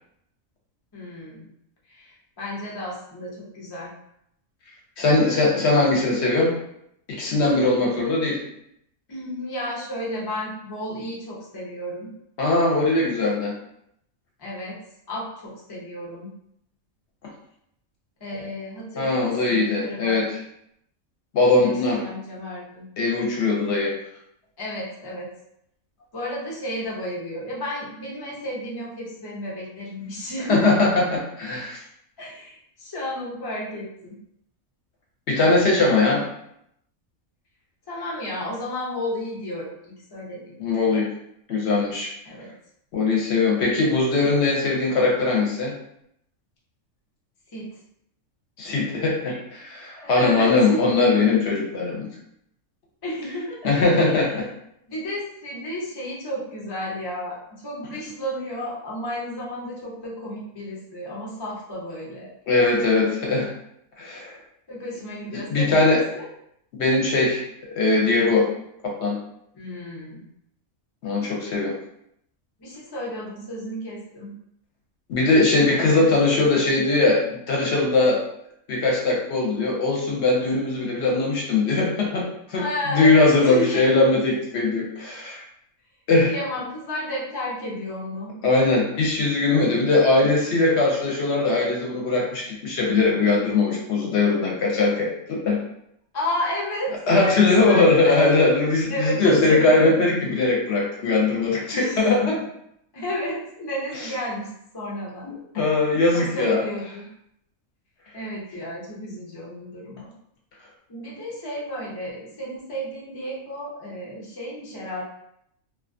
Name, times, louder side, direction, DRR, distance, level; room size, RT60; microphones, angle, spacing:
voice 1, 0.9-1.5 1.9-3.9 5.5-5.8 9.1-12.1 14.4-14.8 15.1-16.3 18.2-20.2 21.6-22.9 24.6-25.3 26.1-30.7 32.2-34.2 37.9-40.6 42.3-42.5 47.5-47.7 50.1-50.9 53.0-53.6 54.0-54.2 54.9-62.3 64.7-66.3 69.5-70.2 72.6-74.3 82.5-83.9 86.3-88.3 96.1-98.5 98.9-100.0 101.7-102.4 102.9-105.7 106.1-107.1 108.1-110.1 110.9-115.0, equal, 40° left, -5 dB, 0.3 m, -32 dB
voice 2, 5.0-6.5 7.1-8.4 12.4-13.5 19.0-20.3 21.3-22.0 23.0-23.9 30.5-31.8 35.3-36.2 40.6-41.1 41.5-42.1 42.9-45.7 48.6-52.1 53.6-54.5 62.5-63.5 64.0-64.3 65.3-66.0 66.8-67.4 67.7-68.5 68.8-69.2 71.0-71.7 75.1-78.2 78.7-85.4 86.1-86.3 88.4-95.6 97.1-102.4 105.2-106.6, left 3 dB, 65° left, -2 dB, 0.8 m, -20 dB
2.4 x 2.3 x 2.5 m, 0.75 s
omnidirectional pair, 1.4 m